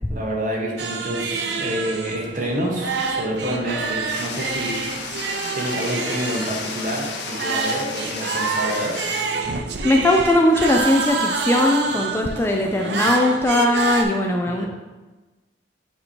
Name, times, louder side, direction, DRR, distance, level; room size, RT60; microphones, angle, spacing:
voice 1, 0.1-4.8 5.5-9.0 12.6-13.0 14.5-14.7, equal, 45° right, -1 dB, 1.1 m, -28 dB
sound 1, 0.8-14.0, right 4 dB, 65° right, 0.5 m, -27 dB
sound 2, 4.1-9.2, left 4 dB, 65° left, 0.7 m, -33 dB
voice 2, 9.8-14.7, left 1 dB, 15° left, 1 dB, 0.4 m, -19 dB
7.6 x 2.8 x 4.4 m, 1.2 s
head